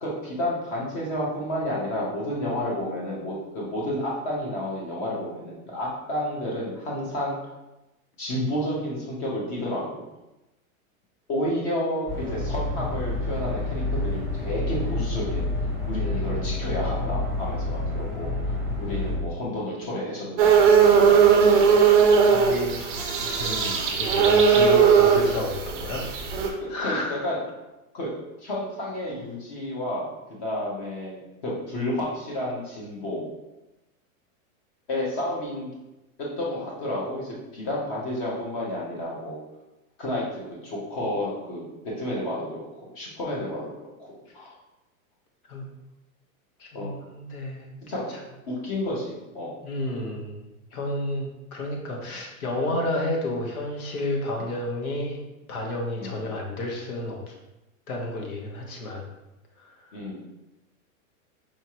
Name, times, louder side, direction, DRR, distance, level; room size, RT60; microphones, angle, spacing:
voice 1, 0.0-7.4 8.2-10.0 11.3-15.4 15.9-21.3 23.6-23.8 26.6-27.0 27.2-27.4 27.9-28.1 28.4-30.1 30.4-33.3 34.9-35.7 36.2-39.4 40.0-43.7 44.0-44.5 46.7-46.9 47.9-48.1 48.5-49.6 54.4-54.5 56.0-56.2 59.9-60.2, left 1 dB, 25° left, -3 dB, 0.9 m, -31 dB
sound 1, 12.1-19.2, left 2 dB, ahead, 1.2 m, -28 dB
sound 2, 20.4-26.5, right 6 dB, 35° right, 0.5 m, -18 dB
voice 2, 22.3-22.8 23.2-23.7 24.0-26.0 26.4-27.2 45.5-45.7 46.6-47.8 48.1-48.2 49.6-55.2 55.5-57.3 57.9-59.0 59.6-59.9, left 1 dB, 80° left, 0 dB, 1.3 m, -31 dB
4.9 x 2.9 x 3.0 m, 0.99 s
supercardioid pair, 180°, 43 cm